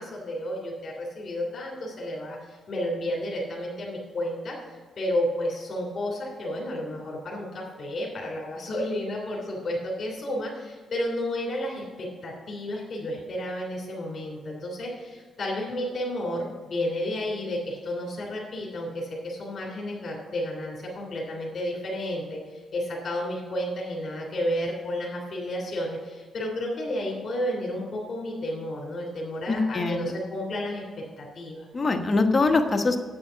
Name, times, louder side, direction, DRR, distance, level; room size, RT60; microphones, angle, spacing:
voice 1, 0.0-4.5 5.0-30.8 31.2-31.7, left 1 dB, 45° left, -3 dB, 3.1 m, -31 dB
voice 2, 29.5-30.2 31.7-33.0, left 3 dB, 30° left, 5 dB, 1.2 m, -23 dB
8.6 x 8.4 x 5.8 m, 1.4 s
cardioid pair, 100°, 0 cm